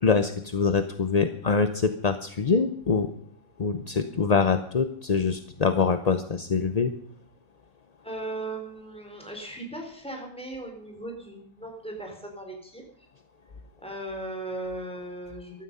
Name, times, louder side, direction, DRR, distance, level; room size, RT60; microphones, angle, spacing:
voice 1, 0.0-3.1 3.6-6.9, left 5 dB, 40° left, 9 dB, 0.6 m, -24 dB
voice 2, 8.0-12.9 13.8-15.6, right 2 dB, 5° left, 2 dB, 4.3 m, -37 dB
14.5 x 13.5 x 5.5 m, 0.65 s
omnidirectional pair, 1.5 m